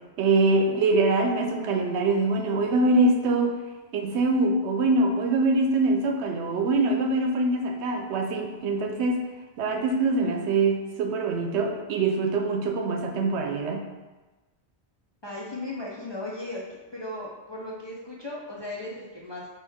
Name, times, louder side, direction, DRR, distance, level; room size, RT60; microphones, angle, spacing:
voice 1, 0.2-3.5 3.9-9.2 9.6-13.8, right 2 dB, 85° right, 3 dB, 0.9 m, -24 dB
voice 2, 15.2-19.5, left 2 dB, 35° left, -5 dB, 0.5 m, -36 dB
4.5 x 3.1 x 3.5 m, 1.2 s
omnidirectional pair, 1.1 m